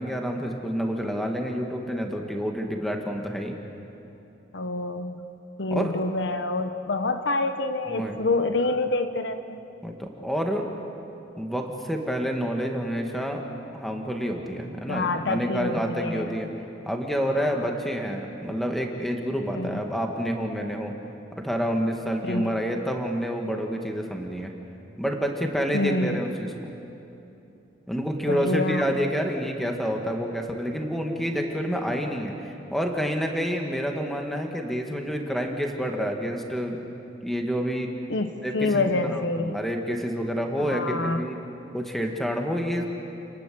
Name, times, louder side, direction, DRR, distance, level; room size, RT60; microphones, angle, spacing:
voice 1, 0.0-3.6 5.7-6.0 7.9-8.2 9.8-10.7 11.4-13.5 13.7-16.5 16.9-20.9 21.4-24.5 25.0-26.5 27.9-36.8 37.2-37.9 38.4-41.4 41.7-43.0, equal, ahead, 2 dB, 2.0 m, -28 dB
voice 2, 4.5-5.3 5.6-9.6 14.8-16.3 17.4-17.7 19.6-19.7 22.2-22.5 25.7-26.2 28.3-28.9 38.1-39.6 40.6-41.2, left 2 dB, 60° left, 8 dB, 1.1 m, -27 dB
30.0 x 19.5 x 7.8 m, 2.9 s
head